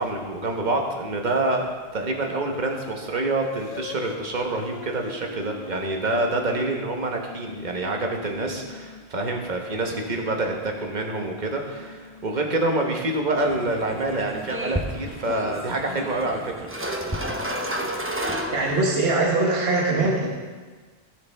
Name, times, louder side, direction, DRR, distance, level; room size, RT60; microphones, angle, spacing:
voice 1, 0.0-16.7, right 2 dB, 40° right, 2 dB, 1.4 m, -27 dB
sound 1, 2.5-3.0 3.4-9.0 9.8-12.7, left 5 dB, 50° left, 0.7 m, -41 dB
sound 2, 13.4-19.1, right 1 dB, 15° right, 0.7 m, -31 dB
voice 2, 18.5-20.3, right 2 dB, 60° right, -2 dB, 1.5 m, -22 dB
17.0 x 6.8 x 3.5 m, 1.4 s
omnidirectional pair, 1.1 m